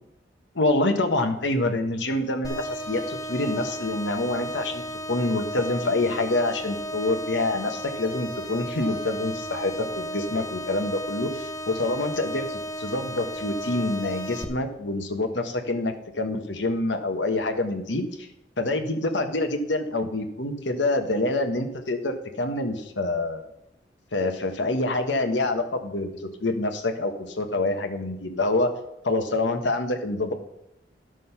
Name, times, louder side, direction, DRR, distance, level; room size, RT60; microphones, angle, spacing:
voice 1, 0.5-4.8 5.1-18.0 18.6-23.5 24.1-28.7 29.0-30.3, left 2 dB, 85° left, 6 dB, 1.3 m, -26 dB
sound 1, 2.4-14.4, equal, 20° left, 1.1 m, -34 dB
11.5 x 6.3 x 5.8 m, 0.82 s
head